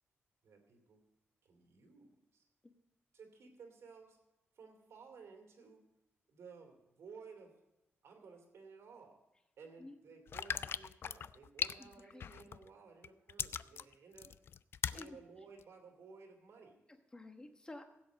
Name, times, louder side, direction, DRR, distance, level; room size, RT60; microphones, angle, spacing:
voice 1, 0.4-1.0 1.4-2.4 3.1-4.2 4.5-5.8 6.3-7.6 8.0-9.2 9.6-14.4 14.9-16.8, right 5 dB, 80° right, 4 dB, 2.8 m, -56 dB
sound 1, 10.3-12.7 13.0-15.1 15.6-15.7, left 7 dB, 55° left, 0.3 m, -39 dB
voice 2, 11.8-12.5 14.9-15.2 16.9-17.8, left 2 dB, 15° left, 6 dB, 1.2 m, -52 dB
16.5 x 7.8 x 5.3 m, 0.91 s
wide cardioid pair, 130°, 5 cm